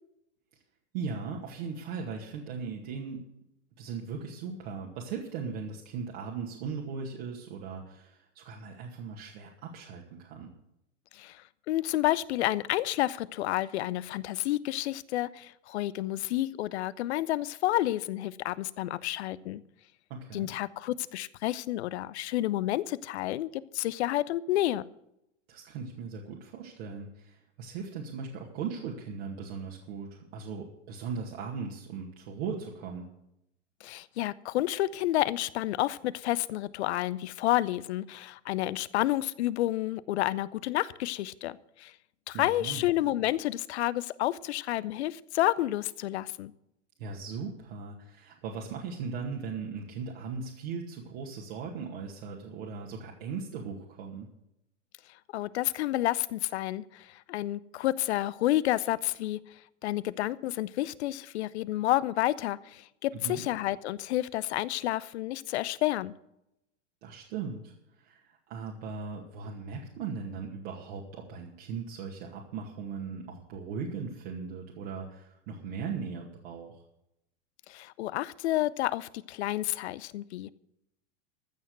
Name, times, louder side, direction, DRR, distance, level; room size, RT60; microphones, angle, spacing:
voice 1, 0.9-3.3 3.8-10.5 20.1-20.5 25.5-33.1 42.3-42.8 47.0-54.3 63.1-63.4 67.0-76.8, right 5 dB, 55° right, -2 dB, 2.3 m, -38 dB
voice 2, 11.1-19.6 20.3-24.8 33.8-41.9 42.3-46.5 55.3-59.4 59.8-66.1 77.7-80.5, left 15 dB, 60° left, 18 dB, 0.7 m, -30 dB
14.5 x 6.5 x 7.9 m, 0.82 s
hypercardioid pair, 105°, 37 cm